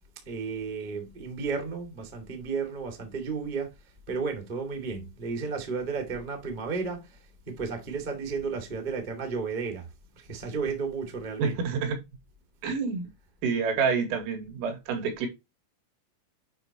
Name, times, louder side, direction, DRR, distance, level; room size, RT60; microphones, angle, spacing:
voice 1, 0.2-3.7 4.1-7.2 7.5-9.9 10.1-11.7, right 5 dB, 40° right, 0.6 m, -33 dB
voice 2, 11.4-12.0 12.6-13.1 13.4-15.3, right 5 dB, 80° right, 4.7 m, -28 dB
8.7 x 5.5 x 3.0 m
omnidirectional pair, 5.7 m